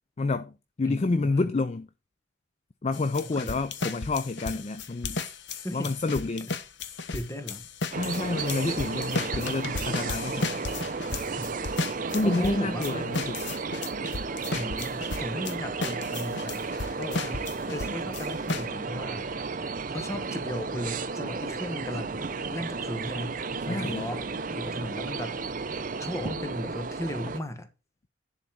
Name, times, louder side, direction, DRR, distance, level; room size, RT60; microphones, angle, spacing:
voice 1, 0.2-1.9 2.8-5.4 5.7-6.5 8.0-10.5 12.1-13.4 23.7-24.1, left 3 dB, 35° left, 0.4 m, -29 dB
voice 2, 0.8-1.5 3.2-3.6 5.5-6.0 7.1-7.7 11.3-11.6 12.2-13.1 14.5-19.3 19.7-27.7, equal, 15° left, 1.2 m, -37 dB
sound 1, 2.9-15.5 15.8-18.7, left 3 dB, 65° left, 0.9 m, -34 dB
sound 2, 7.9-27.4, right 4 dB, 45° right, 0.6 m, -33 dB
11.0 x 4.1 x 6.0 m
head